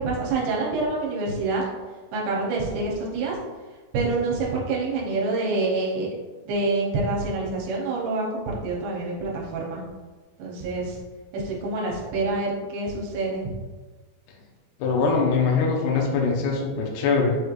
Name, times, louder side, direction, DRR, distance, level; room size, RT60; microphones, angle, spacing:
voice 1, 0.0-1.6 2.1-3.4 3.9-6.1 6.5-9.8 10.4-11.0 11.3-13.5, right 3 dB, 75° right, -3 dB, 2.6 m, -27 dB
voice 2, 14.8-17.4, left 4 dB, 90° left, -2 dB, 1.8 m, -22 dB
6.3 x 3.1 x 2.4 m, 1.3 s
omnidirectional pair, 4.3 m